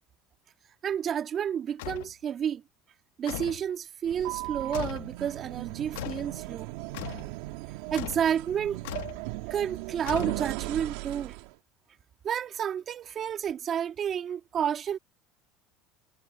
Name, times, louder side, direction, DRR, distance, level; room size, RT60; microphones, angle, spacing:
voice 1, 0.8-2.6 3.2-6.7 7.9-8.8 9.5-11.4 12.2-15.0, right 8 dB, 40° right, 2.2 m, -30 dB
sound 1, 1.8-2.1 3.3-3.7 4.7-5.1 6.0-6.3 6.9-7.3 8.0-8.3 8.8-9.2 10.1-10.7, left 17 dB, 85° left, 0.9 m, -38 dB
sound 2, 4.0-11.5, right 20 dB, 75° right, 1.7 m, -38 dB
supercardioid pair, 110°, 0 cm